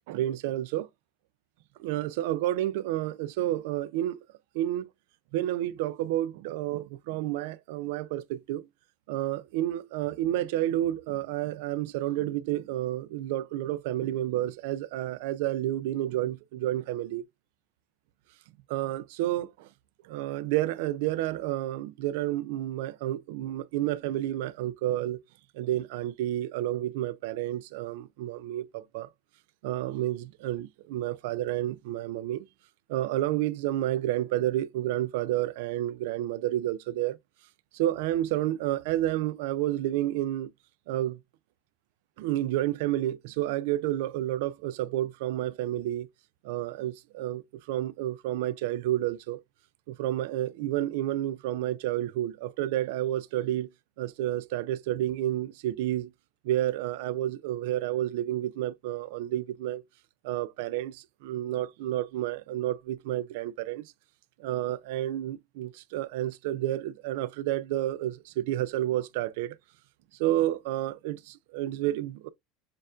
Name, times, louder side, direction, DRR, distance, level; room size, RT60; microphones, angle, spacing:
voice 1, 0.1-0.9 1.8-4.2 4.5-4.9 5.3-8.7 9.1-17.2 18.7-19.7 20.0-25.2 25.5-29.1 29.6-32.5 32.9-37.2 37.7-40.5 40.9-41.2 42.2-46.1 46.4-49.4 49.9-53.7 54.0-56.1 56.4-59.8 60.2-63.9 64.4-69.6 70.2-72.3, right 13 dB, 65° right, 0.3 m, -30 dB
6.6 x 2.4 x 2.3 m
cardioid pair, 180°, 0 cm